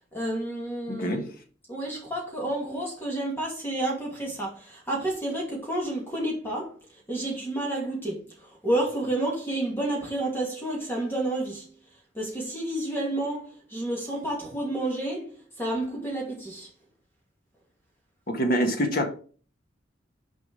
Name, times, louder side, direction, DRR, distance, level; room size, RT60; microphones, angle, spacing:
voice 1, 0.1-1.3 1.7-6.8 7.1-11.7 12.1-16.7, right 1 dB, 10° left, 2.3 m, -30 dB
voice 2, 0.9-1.3 18.3-19.1, equal, 50° left, 1.4 m, -25 dB
6.5 x 5.0 x 5.1 m
head